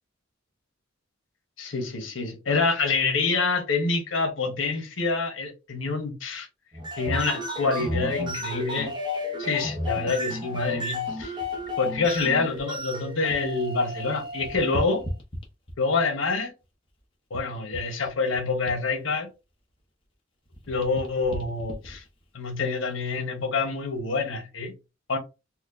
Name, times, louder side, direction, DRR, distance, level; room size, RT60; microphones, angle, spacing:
voice 1, 1.6-6.5 7.0-8.9 9.4-11.4 11.8-15.0 15.8-16.5 17.3-19.3 20.7-22.0 22.3-24.7 25.1-25.2, left 4 dB, 85° left, 1.0 m, -27 dB
sound 1, 6.7-15.0, left 1 dB, 25° right, 0.7 m, -32 dB
sound 2, 10.9-13.6 13.9-16.0 16.6-20.1 20.4-23.2 23.8-24.0, equal, 25° left, 0.9 m, -40 dB
4.2 x 2.3 x 2.6 m
head